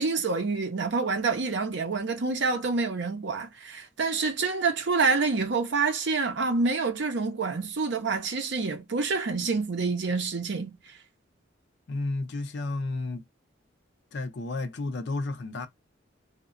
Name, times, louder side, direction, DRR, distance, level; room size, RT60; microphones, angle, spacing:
voice 1, 0.0-10.9, right 4 dB, 65° right, 0.6 m, -27 dB
voice 2, 11.9-13.2 14.1-15.7, left 2 dB, 60° left, 0.5 m, -32 dB
2.8 x 2.1 x 2.4 m
head